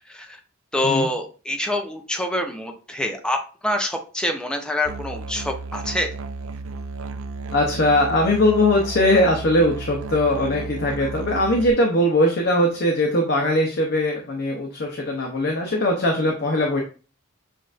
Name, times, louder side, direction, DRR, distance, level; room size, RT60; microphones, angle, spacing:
voice 1, 0.7-3.4 3.6-6.1, left 1 dB, 5° left, 3 dB, 0.5 m, -26 dB
Musical instrument, 4.8-11.7, right 3 dB, 65° right, 0.4 m, -33 dB
voice 2, 7.5-16.8, left 1 dB, 50° left, 0 dB, 0.7 m, -20 dB
7.4 x 2.5 x 2.5 m, 0.36 s
head